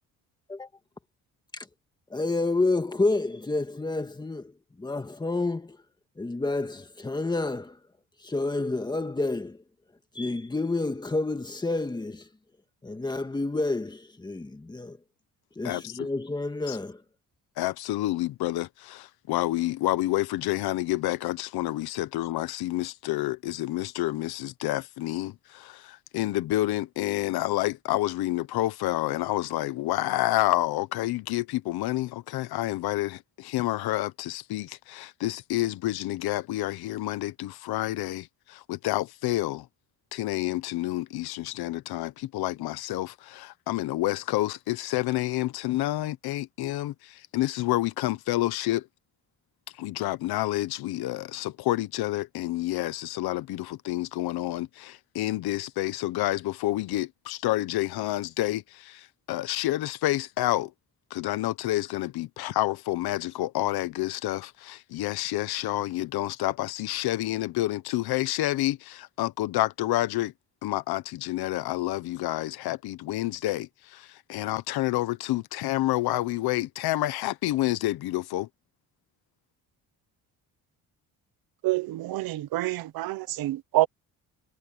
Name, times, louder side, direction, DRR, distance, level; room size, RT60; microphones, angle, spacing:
voice 1, 2.1-4.5 4.8-5.8 6.2-7.8 8.2-9.6 10.1-12.3 12.8-15.0 15.6-17.0, left 2 dB, 10° left, 1.8 m, -29 dB
voice 2, 15.6-16.1 16.7-16.8 17.6-39.7 40.1-48.9 49.7-60.7 61.1-70.3 70.6-78.5, left 16 dB, 85° left, 1.1 m, -29 dB
voice 3, 81.6-83.9, right 17 dB, 75° right, 0.9 m, -27 dB
cardioid pair, 155°, 37 cm